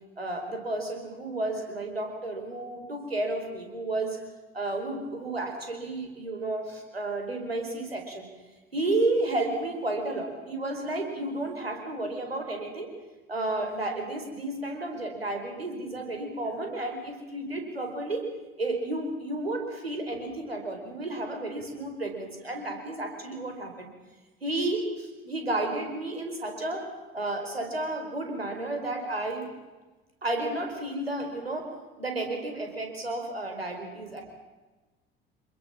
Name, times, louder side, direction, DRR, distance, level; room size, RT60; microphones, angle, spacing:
voice 1, 0.2-4.2 4.5-8.2 8.7-12.9 13.3-18.3 18.6-23.9 24.4-26.8 27.1-29.5 30.2-31.7 32.0-34.2, right 2 dB, 85° right, 4 dB, 4.9 m, -32 dB
28.0 x 21.0 x 7.5 m, 1.2 s
figure-of-eight pair, 60°, 29 cm